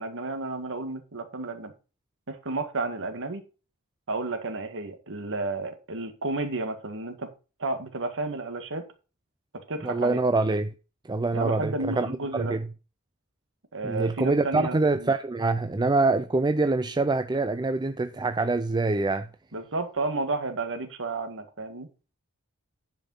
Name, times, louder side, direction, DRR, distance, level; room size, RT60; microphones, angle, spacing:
voice 1, 0.0-1.7 2.3-3.4 4.1-7.3 7.6-8.8 9.5-10.2 11.3-12.6 13.7-15.1 19.5-21.9, right 3 dB, 60° right, 1.9 m, -32 dB
voice 2, 9.8-10.7 11.0-12.7 13.8-19.3, right 3 dB, 20° right, 0.5 m, -25 dB
10.0 x 5.5 x 5.5 m
head